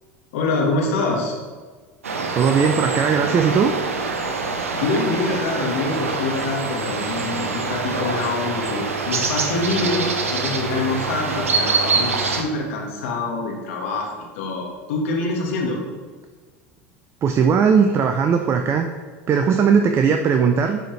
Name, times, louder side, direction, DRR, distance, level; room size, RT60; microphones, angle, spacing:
voice 1, 0.3-1.4 4.7-15.8, left 3 dB, 70° left, 0 dB, 1.6 m, -25 dB
sound 1, 2.0-12.4, right 4 dB, 90° right, 0.6 m, -25 dB
voice 2, 2.3-3.7 17.2-18.9 19.3-20.8, right 6 dB, 35° right, 5 dB, 0.5 m, -18 dB
10.5 x 4.3 x 3.2 m, 1.5 s
hypercardioid pair, 80°, 7 cm